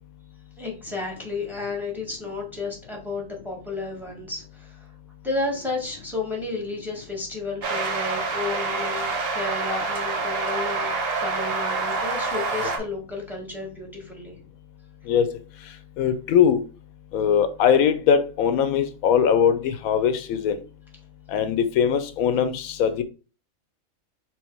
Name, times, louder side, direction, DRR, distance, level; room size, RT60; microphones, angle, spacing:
voice 1, 0.6-4.9 5.2-14.3, left 3 dB, ahead, 1.3 m, -32 dB
sound 1, 7.6-12.8, right 3 dB, 50° right, 1.0 m, -27 dB
voice 2, 16.0-16.6 17.1-20.6 21.3-23.0, left 8 dB, 85° left, 1.1 m, -21 dB
4.5 x 3.8 x 3.1 m
omnidirectional pair, 1.4 m